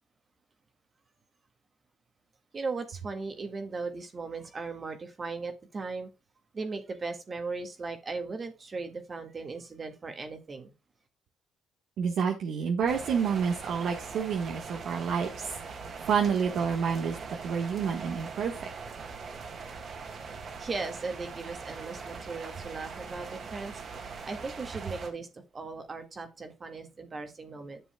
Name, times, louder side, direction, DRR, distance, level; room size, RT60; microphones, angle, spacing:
voice 1, 2.5-6.1 6.5-10.7 20.6-27.8, right 4 dB, 35° right, 6 dB, 1.7 m, -38 dB
voice 2, 12.0-17.2 17.4-18.7, right 6 dB, 70° right, 2 dB, 1.3 m, -29 dB
sound 1, 12.9-25.1, right 5 dB, 50° right, 2.1 m, -41 dB
10.5 x 6.9 x 2.2 m, 0.26 s
cardioid pair, 100°, 0 cm